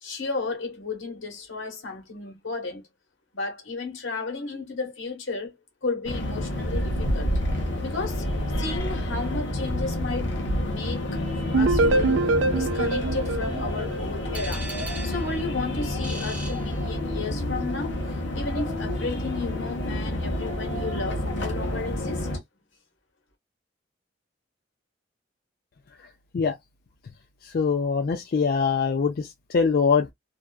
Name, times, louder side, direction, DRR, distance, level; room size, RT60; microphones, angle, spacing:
voice 1, 0.0-2.8 3.3-5.5 5.8-7.3 7.8-8.3 8.6-11.2 11.5-14.7 15.0-18.0 18.3-22.3, left 3 dB, 90° left, 1.2 m, -33 dB
sound 1, 6.0-22.4, left 1 dB, 70° left, 0.8 m, -29 dB
sound 2, 11.5-14.5, right 2 dB, 80° right, 0.3 m, -24 dB
sound 3, 14.3-17.4, right 1 dB, 10° right, 0.8 m, -40 dB
voice 2, 27.4-30.1, left 5 dB, 50° left, 0.4 m, -23 dB
2.6 x 2.3 x 2.2 m
head